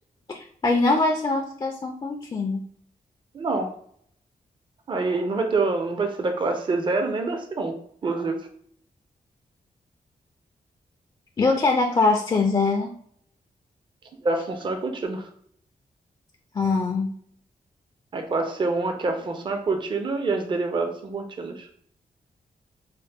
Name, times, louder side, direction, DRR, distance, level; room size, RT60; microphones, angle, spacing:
voice 1, 0.3-2.6 11.4-12.9 16.5-17.1, left 3 dB, 30° left, 2 dB, 0.4 m, -23 dB
voice 2, 3.3-3.7 4.9-7.8 8.0-8.4 14.2-15.3 18.1-21.7, right 3 dB, 30° right, 5 dB, 0.5 m, -26 dB
4.1 x 2.1 x 3.4 m, 0.63 s
wide cardioid pair, 170°, 15 cm